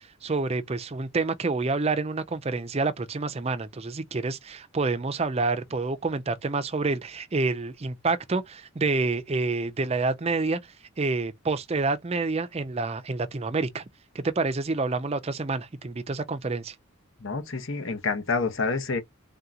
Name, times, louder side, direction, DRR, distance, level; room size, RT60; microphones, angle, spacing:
voice 1, 0.0-10.6 11.0-13.8 14.1-16.7, right 3 dB, 30° right, 0.5 m, -28 dB
voice 2, 17.2-19.0, left 4 dB, 60° left, 1.0 m, -28 dB
3.7 x 2.8 x 3.6 m
head